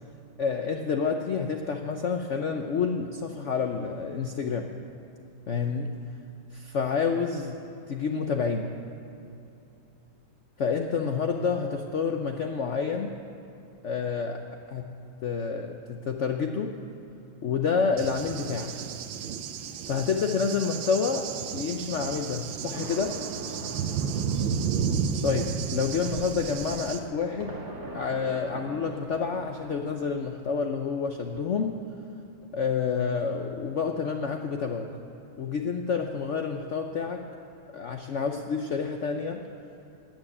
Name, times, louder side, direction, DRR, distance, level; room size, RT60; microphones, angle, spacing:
voice 1, 0.4-4.7 5.5-5.9 6.5-7.6 7.9-8.7 10.6-13.1 13.8-14.4 14.7-15.0 15.2-16.7 17.4-18.7 19.9-23.2 25.2-27.6 27.9-31.8 32.5-34.9 35.4-37.2 37.7-39.4, left 5 dB, 70° left, 4 dB, 0.7 m, -28 dB
Cricket / Thunder, 18.0-27.0, right 7 dB, 85° right, 1.5 m, -32 dB
sound 1, 22.7-30.1, right 2 dB, 50° right, 2.6 m, -43 dB
13.5 x 9.1 x 8.7 m, 2.7 s
omnidirectional pair, 2.1 m